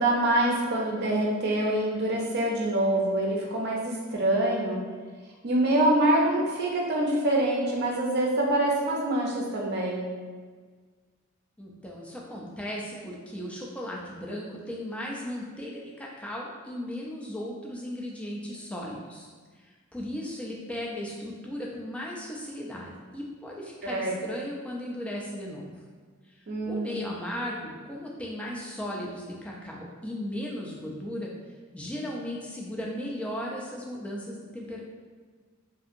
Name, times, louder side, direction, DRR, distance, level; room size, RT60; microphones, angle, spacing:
voice 1, 0.0-4.8 5.4-10.1 23.8-24.1 26.5-27.0, right 1 dB, 50° right, -2 dB, 0.5 m, -25 dB
voice 2, 11.6-19.3 19.6-25.7 26.3-26.4 26.7-31.3 31.7-34.8, left 1 dB, 5° left, -3 dB, 0.3 m, -36 dB
2.7 x 2.6 x 2.5 m, 1.5 s
head